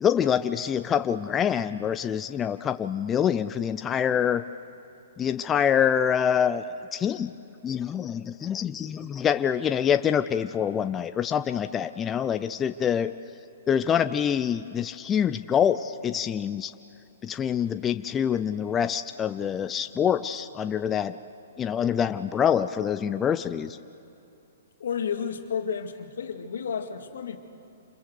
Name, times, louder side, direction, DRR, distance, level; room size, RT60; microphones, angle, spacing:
voice 1, 0.0-4.4 5.2-6.6 6.9-7.3 7.6-13.1 13.7-16.7 17.2-21.2 21.6-23.8, left 8 dB, 20° left, 11 dB, 0.5 m, -25 dB
voice 2, 24.8-27.4, left 7 dB, 75° left, 5 dB, 2.2 m, -31 dB
28.0 x 22.0 x 6.6 m, 2.9 s
hypercardioid pair, 135°, 0 cm